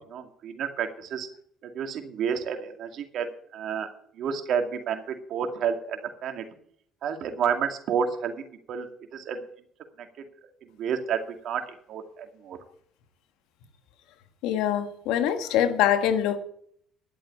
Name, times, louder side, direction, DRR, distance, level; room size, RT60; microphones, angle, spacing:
voice 1, 0.1-1.3 1.7-3.3 3.5-3.9 4.2-6.4 7.0-8.3 8.7-8.9 9.1-9.4 10.8-12.6, right 7 dB, 65° right, 6 dB, 2.3 m, -30 dB
voice 2, 14.4-16.4, left 10 dB, 80° left, 9 dB, 1.6 m, -24 dB
11.5 x 7.7 x 8.5 m, 0.63 s
supercardioid pair, 80°, 0 cm